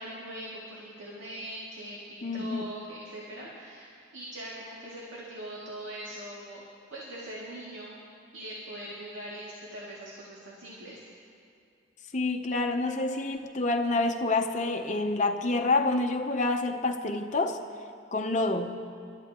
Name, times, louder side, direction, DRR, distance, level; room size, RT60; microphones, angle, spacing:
voice 1, 0.0-6.6 6.9-8.0 8.3-11.0, right 1 dB, 80° right, -6 dB, 2.4 m, -41 dB
voice 2, 2.2-2.7 12.1-17.6 18.1-18.8, left 2 dB, 40° left, 4 dB, 0.7 m, -28 dB
27.5 x 13.0 x 3.0 m, 2.4 s
head